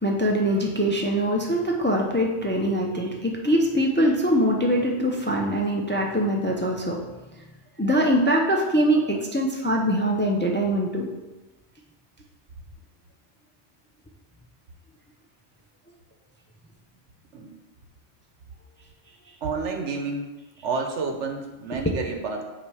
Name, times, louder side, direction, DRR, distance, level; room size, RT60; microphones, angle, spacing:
voice 1, 0.0-7.0 7.8-11.1 21.8-21.9, equal, 15° left, 0 dB, 0.4 m, -23 dB
voice 2, 19.4-22.4, right 4 dB, 90° right, 4 dB, 1.2 m, -30 dB
8.5 x 2.9 x 4.8 m, 1.1 s
omnidirectional pair, 1.2 m